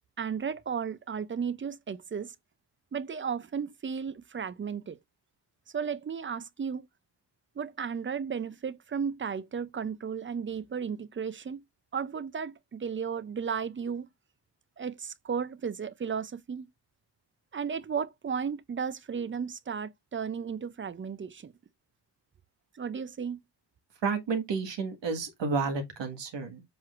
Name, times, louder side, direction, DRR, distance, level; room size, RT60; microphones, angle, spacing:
voice 1, 0.2-2.3 2.9-5.0 5.7-6.9 7.6-11.6 11.9-14.1 14.8-16.7 17.5-21.5 22.8-23.4, right 6 dB, 30° right, 0.4 m, -34 dB
voice 2, 24.0-26.6, right 4 dB, 75° right, 1.7 m, -31 dB
7.6 x 5.9 x 2.5 m
wide cardioid pair, 165°, 44 cm